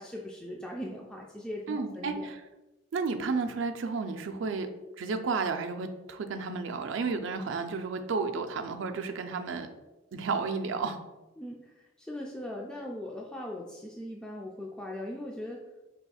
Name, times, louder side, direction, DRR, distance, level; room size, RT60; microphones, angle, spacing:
voice 1, 0.0-2.3 11.4-15.6, left 1 dB, 5° left, -2 dB, 0.3 m, -40 dB
voice 2, 1.7-2.4 2.9-4.7 5.0-9.7 10.1-11.0, right 4 dB, 65° right, 7 dB, 0.4 m, -32 dB
5.5 x 3.4 x 2.3 m, 1.1 s
head